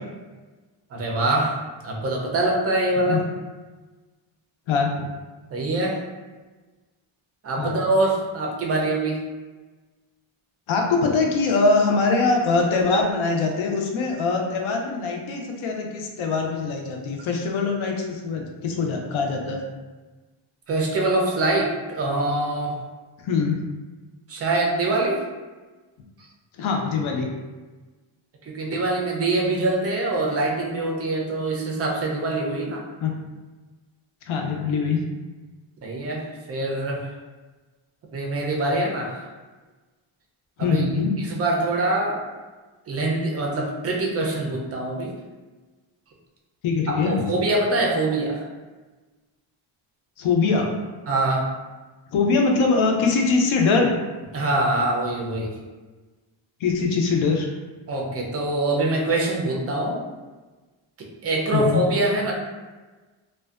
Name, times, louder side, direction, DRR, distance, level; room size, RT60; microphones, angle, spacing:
voice 1, 0.9-1.6 1.8-3.2 5.5-6.0 7.4-9.2 20.7-22.8 24.3-25.2 28.4-32.8 35.8-37.1 38.1-39.3 40.6-40.8 41.2-42.2 42.9-45.1 46.9-48.5 51.1-51.5 54.3-55.5 57.9-60.0 61.2-62.3, right 2 dB, 35° right, -1 dB, 0.4 m, -24 dB
voice 2, 4.7-5.1 7.6-7.8 10.7-19.6 23.2-23.6 26.6-27.3 33.0-33.1 34.3-35.0 40.6-41.1 46.6-47.2 50.2-50.7 52.1-53.9 56.6-57.5 61.5-61.8, left 4 dB, 75° left, 2 dB, 0.6 m, -22 dB
2.5 x 2.2 x 2.3 m, 1.3 s
wide cardioid pair, 145°, 50 cm